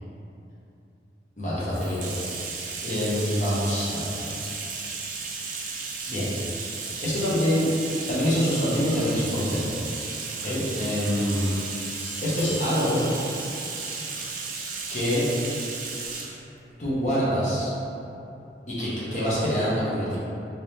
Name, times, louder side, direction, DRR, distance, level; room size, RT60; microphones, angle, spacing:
voice 1, 1.4-2.1 2.8-4.3 6.1-6.7 7.0-7.7 8.1-9.9 10.4-11.5 11.9-13.0 14.9-15.3 16.8-17.7 18.7-20.2, equal, 40° left, -9 dB, 1.0 m, -26 dB
Bathtub (filling or washing), 1.7-16.4, right 4 dB, 45° right, 0.4 m, -34 dB
sound 1, 8.5-10.1 10.4-10.6 12.0-13.7, equal, 70° left, 0.7 m, -43 dB
3.6 x 2.8 x 3.2 m, 2.8 s
head